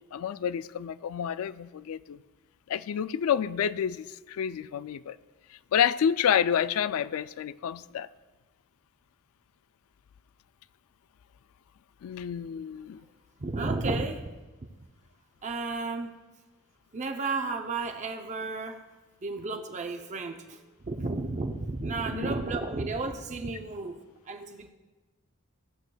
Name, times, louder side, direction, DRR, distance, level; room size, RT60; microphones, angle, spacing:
voice 1, 0.1-2.2 2.7-5.2 5.7-8.1 12.0-13.0 22.1-22.3, left 8 dB, 75° left, 16 dB, 0.3 m, -29 dB
voice 2, 13.4-14.3 15.4-16.2 16.9-18.8 19.2-24.7, right 3 dB, 35° right, 4 dB, 0.6 m, -33 dB
15.5 x 7.8 x 2.3 m, 1.2 s
head